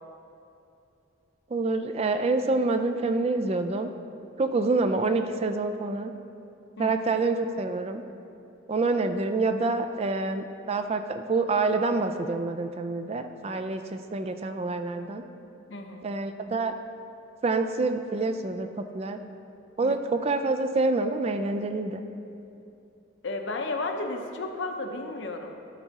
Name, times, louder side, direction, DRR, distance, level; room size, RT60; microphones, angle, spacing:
voice 1, 1.5-3.9 4.4-6.1 6.8-8.0 8.7-15.2 16.0-16.7 17.4-19.2 19.8-22.0, right 3 dB, 30° right, 7 dB, 0.3 m, -27 dB
voice 2, 15.7-16.0 19.8-20.0 23.2-25.5, left 2 dB, 65° left, 4 dB, 0.7 m, -33 dB
12.5 x 4.7 x 4.1 m, 2.7 s
head